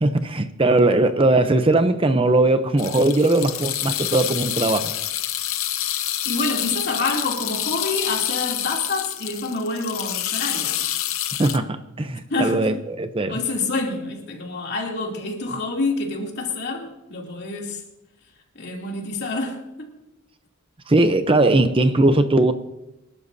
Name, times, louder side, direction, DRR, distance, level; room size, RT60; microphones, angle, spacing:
voice 1, 0.0-5.0 11.4-13.4 20.9-22.5, right 2 dB, 25° right, 0.6 m, -19 dB
sound 1, 2.8-11.6, left 12 dB, 75° left, 0.7 m, -27 dB
voice 2, 6.2-10.8 12.3-12.7 13.3-17.8 18.5-20.0, left 3 dB, 55° left, 2.9 m, -27 dB
27.0 x 12.5 x 2.7 m
head